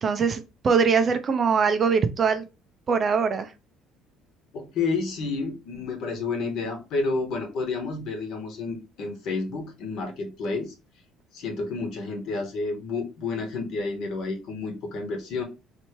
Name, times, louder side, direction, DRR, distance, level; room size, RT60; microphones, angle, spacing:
voice 1, 0.0-2.4 2.9-3.5, right 5 dB, 30° right, 9 dB, 0.5 m, -22 dB
voice 2, 4.5-10.7 11.3-15.4, left 3 dB, 55° left, 4 dB, 1.3 m, -30 dB
3.3 x 3.0 x 4.5 m, 0.27 s
cardioid pair, 160°, 0 cm